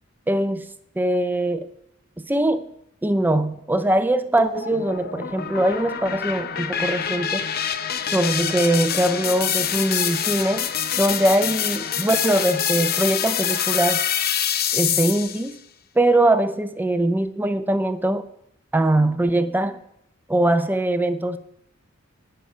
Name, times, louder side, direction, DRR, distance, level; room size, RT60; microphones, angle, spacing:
voice 1, 0.3-0.7 1.0-1.7 2.3-2.7 3.0-7.5 8.1-10.7 11.0-14.0 14.7-15.6 16.0-18.2 18.7-19.8 20.3-21.4, right 1 dB, 10° right, 10 dB, 0.5 m, -22 dB
sound 1, 4.4-15.5, left 9 dB, 50° left, 0.6 m, -25 dB
9.9 x 6.7 x 5.0 m, 0.76 s
head